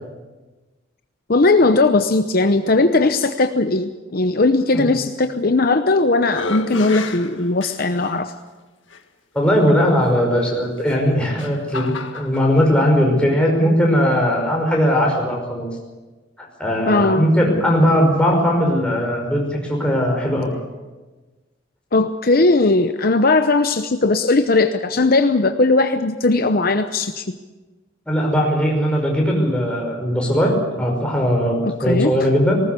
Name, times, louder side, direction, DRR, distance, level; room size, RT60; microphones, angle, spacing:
voice 1, 1.3-8.3 16.9-17.3 21.9-27.4 31.6-32.1, left 3 dB, 50° left, 8 dB, 0.8 m, -18 dB
sound 1, 5.4-5.9 6.3-8.1 8.9-9.0 10.8-12.5, left 3 dB, 80° left, 1.9 m, -31 dB
voice 2, 9.3-15.7 16.4-20.5 28.1-32.6, equal, 5° left, -1 dB, 5.5 m, -19 dB
19.5 x 19.0 x 8.3 m, 1.2 s
head